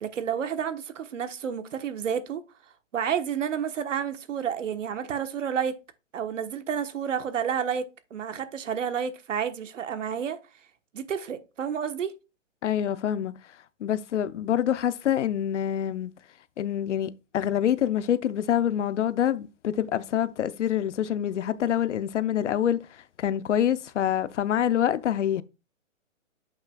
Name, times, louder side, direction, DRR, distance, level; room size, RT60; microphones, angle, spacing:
voice 1, 0.0-2.4 2.9-5.7 6.1-7.8 8.1-10.4 10.9-12.1, right 8 dB, 70° right, 1.2 m, -30 dB
voice 2, 12.6-13.3 13.8-16.1 16.6-22.8 23.2-25.4, left 10 dB, 65° left, 0.7 m, -26 dB
8.3 x 6.1 x 2.3 m
hypercardioid pair, 155°, 39 cm